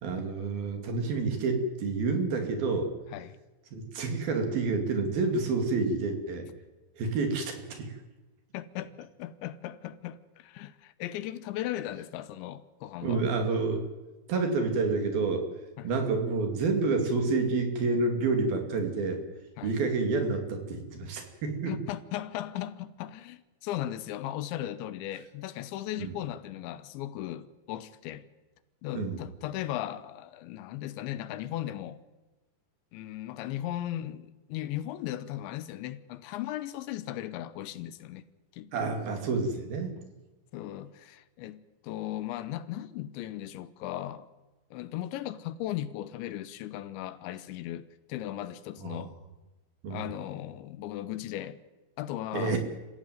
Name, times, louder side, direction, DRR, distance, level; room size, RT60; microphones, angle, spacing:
voice 1, 0.0-2.9 3.7-6.5 7.0-8.0 13.0-13.8 14.3-15.5 15.8-19.2 19.6-21.7 26.0-26.1 29.0-29.2 38.7-40.0 48.8-49.0 49.8-50.0 52.3-52.6, right 3 dB, 55° right, 4.1 m, -29 dB
voice 2, 8.5-13.2 15.8-15.9 19.6-19.8 21.7-28.3 28.8-32.0 32.9-38.2 38.5-38.9 40.5-44.3 44.7-49.2 49.9-51.6 52.0-52.6, left 13 dB, 80° left, 3.2 m, -37 dB
27.0 x 15.5 x 9.2 m
omnidirectional pair, 5.3 m